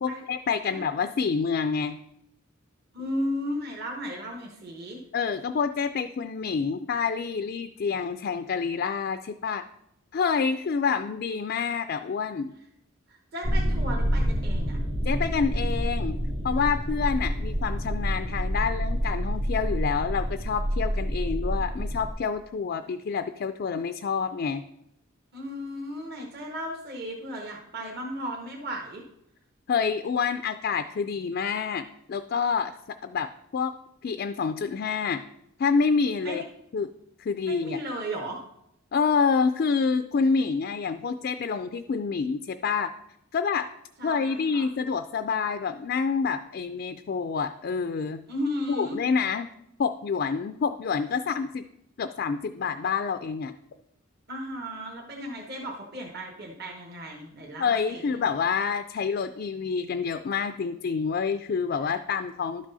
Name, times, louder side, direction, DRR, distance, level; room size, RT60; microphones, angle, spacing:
voice 1, 0.0-2.0 5.1-9.6 10.1-12.5 15.0-16.2 16.4-24.6 29.7-32.7 33.0-33.8 34.0-35.2 35.6-36.4 36.7-36.9 37.2-37.8 38.9-42.9 43.3-43.7 44.0-48.2 48.7-49.5 49.8-51.6 52.0-53.5 57.6-62.7, left 5 dB, 45° left, 9 dB, 0.3 m, -27 dB
voice 2, 2.9-5.0 13.1-14.8 25.3-29.0 36.2-36.4 37.5-38.4 44.0-44.6 48.3-49.0 54.3-58.2, equal, 45° right, -1 dB, 1.1 m, -35 dB
sound 1, 13.4-22.1, equal, 70° right, 1.5 m, -28 dB
11.5 x 6.1 x 4.1 m, 0.79 s
head